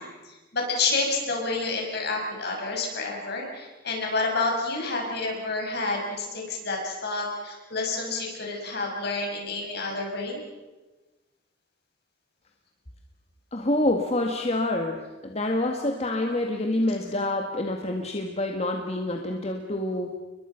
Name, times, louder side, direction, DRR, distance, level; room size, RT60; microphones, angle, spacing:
voice 1, 0.0-10.4, left 3 dB, 60° left, 0 dB, 6.8 m, -29 dB
voice 2, 13.5-20.1, left 1 dB, 35° left, 3 dB, 1.8 m, -27 dB
30.0 x 22.0 x 5.9 m, 1.2 s
head